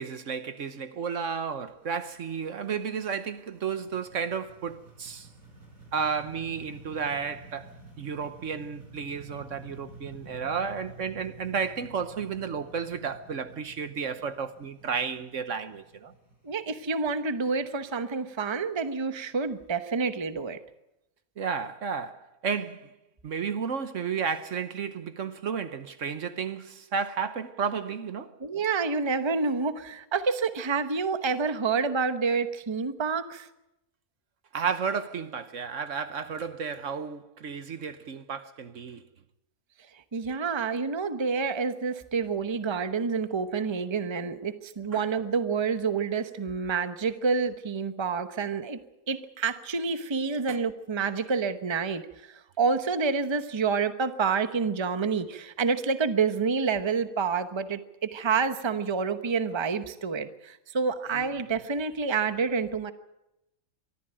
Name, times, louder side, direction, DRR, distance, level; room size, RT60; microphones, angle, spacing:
voice 1, 0.0-5.3 5.9-16.1 21.4-22.9 23.2-28.3 34.5-39.0 44.9-45.0 50.5-50.6, right 6 dB, 60° right, 1.3 m, -32 dB
sound 1, 0.9-19.7, right 2 dB, 80° right, 5.9 m, -51 dB
voice 2, 16.4-20.6 28.4-33.5 40.1-48.8 49.1-62.9, right 5 dB, 20° right, 0.9 m, -28 dB
24.0 x 14.0 x 8.9 m
omnidirectional pair, 1.5 m